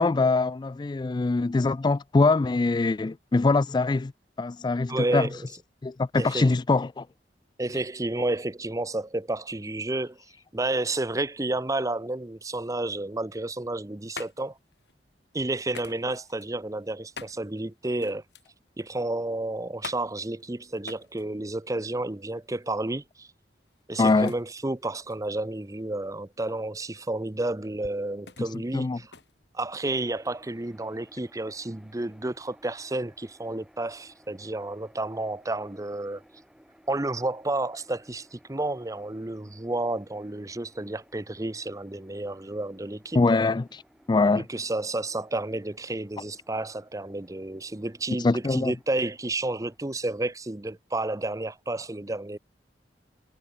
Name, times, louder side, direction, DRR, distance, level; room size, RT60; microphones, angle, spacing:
voice 1, 0.0-4.1 4.4-5.3 5.8-7.1 24.0-24.3 28.7-29.0 43.1-43.8 44.1-44.4 48.2-48.7, left 3 dB, 25° left, 0.3 m, -23 dB
voice 2, 4.9-5.4 6.2-6.5 7.6-10.2 10.5-14.6 15.3-18.2 18.8-23.3 23.9-29.1 29.5-36.2 36.9-43.2 44.3-52.4, right 2 dB, 20° right, 0.8 m, -31 dB
sound 1, 13.6-30.2, left 4 dB, 75° left, 6.6 m, -48 dB
sound 2, 29.8-49.8, equal, 5° right, 6.8 m, -59 dB
head